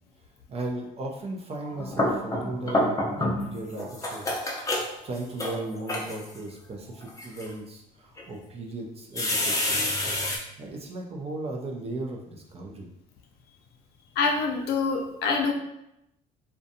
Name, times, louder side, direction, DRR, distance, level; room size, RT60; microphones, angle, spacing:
voice 1, 0.5-4.5 5.0-9.8 10.6-12.9, right 2 dB, 35° right, 0 dB, 0.4 m, -36 dB
sound 1, 1.6-3.5 3.8-6.4 7.0-7.5 8.2-8.3 9.2-10.4, left 1 dB, 20° left, 0.5 m, -28 dB
voice 2, 14.2-15.5, left 4 dB, 70° left, 2 dB, 0.5 m, -25 dB
2.6 x 2.2 x 2.6 m, 0.83 s
cardioid pair, 110°, 17 cm